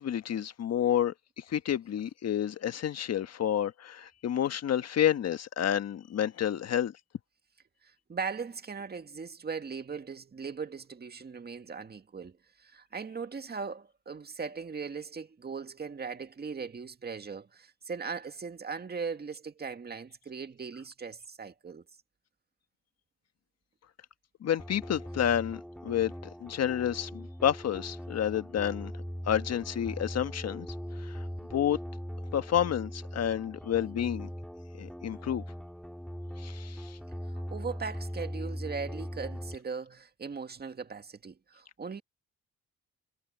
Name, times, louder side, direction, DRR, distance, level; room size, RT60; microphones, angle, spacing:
voice 1, 0.0-6.9 24.4-26.1 26.4-28.9 29.3-31.3 31.5-31.8 32.3-34.3 34.8-35.4 36.4-37.0, left 10 dB, 55° left, 1.4 m, -30 dB
voice 2, 7.8-21.8 37.3-42.0, right 5 dB, 30° right, 1.8 m, -39 dB
sound 1, 24.6-39.6, equal, ahead, 5.1 m, -40 dB
cardioid pair, 90°, 30 cm